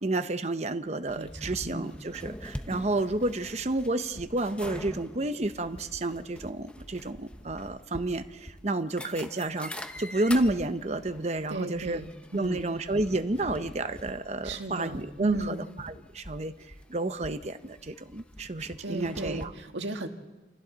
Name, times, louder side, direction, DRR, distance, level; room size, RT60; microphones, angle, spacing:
voice 1, 0.0-12.0 12.3-15.5 15.8-16.5 16.9-19.5, right 2 dB, 35° right, 9 dB, 0.8 m, -30 dB
door fireproof stairwell squeaky faint walking stairs, 1.1-19.5, left 1 dB, 5° left, 0.9 m, -44 dB
voice 2, 1.2-1.9 11.5-12.7 14.4-15.6 18.8-20.1, right 2 dB, 80° right, 4 dB, 1.8 m, -35 dB
28.5 x 27.0 x 4.1 m, 1.2 s
head